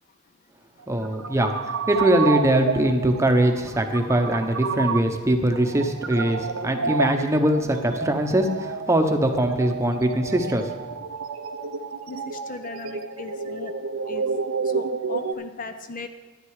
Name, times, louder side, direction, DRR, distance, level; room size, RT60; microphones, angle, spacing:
sound 1, 0.8-15.3, right 5 dB, 70° right, 0.7 m, -30 dB
voice 1, 0.9-10.7, right 1 dB, 15° right, 5 dB, 0.9 m, -22 dB
voice 2, 12.1-13.7 14.0-14.3 14.6-16.1, left 3 dB, 40° left, 8 dB, 0.6 m, -37 dB
12.0 x 10.5 x 4.8 m, 1.2 s
head